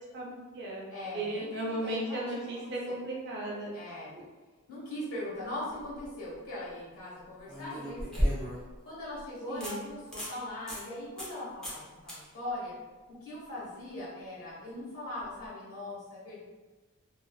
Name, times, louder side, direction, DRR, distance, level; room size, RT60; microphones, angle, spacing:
voice 1, 0.1-0.8 1.1-3.7 9.5-9.9, right 1 dB, 50° right, -3 dB, 0.6 m, -35 dB
voice 2, 0.9-2.3 2.5-3.0 3.7-4.1 4.7-8.4 8.8-12.7 13.2-16.4, left 1 dB, 70° left, -7 dB, 1.3 m, -40 dB
sound 1, 5.7-6.1 7.5-8.8 9.2-9.3 9.6-9.7 10.1-10.3 10.7-10.8 11.2-11.4 11.6-11.8 12.1-12.2 15.3-15.4, equal, 5° left, 0.6 m, -33 dB
2.4 x 2.2 x 2.3 m, 1.2 s
head